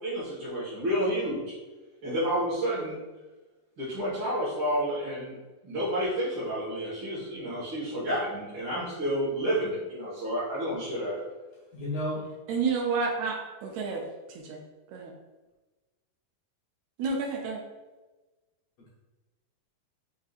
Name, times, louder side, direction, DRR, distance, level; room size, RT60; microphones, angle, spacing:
voice 1, 0.0-1.4 2.0-3.0 3.8-5.3 5.6-11.2, equal, 45° right, -11 dB, 1.7 m, -30 dB
voice 2, 11.7-12.2, equal, 65° left, -8 dB, 1.8 m, -31 dB
voice 3, 12.5-14.0 14.3-14.6 14.9-15.1 17.0-17.6, right 4 dB, 80° right, 0 dB, 1.7 m, -30 dB
5.3 x 3.6 x 2.5 m, 1.2 s
omnidirectional pair, 3.8 m